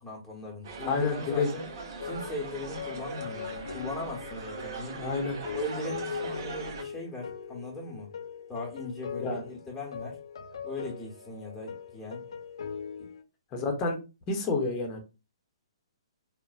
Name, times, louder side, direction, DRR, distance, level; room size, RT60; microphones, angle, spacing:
voice 1, 0.0-1.7 2.0-5.0 5.5-8.1 8.5-10.2 10.6-12.2 13.0-13.1, left 2 dB, 5° left, 1.1 m, -39 dB
sound 1, 0.6-6.8, right 4 dB, 45° right, 0.7 m, -40 dB
voice 2, 0.8-1.5 4.9-5.4 9.2-9.4 13.5-14.0 14.3-15.0, left 4 dB, 25° left, 0.9 m, -29 dB
sound 2, 2.0-13.2, left 7 dB, 60° left, 0.4 m, -41 dB
3.8 x 2.2 x 2.5 m
figure-of-eight pair, 120°, 3 cm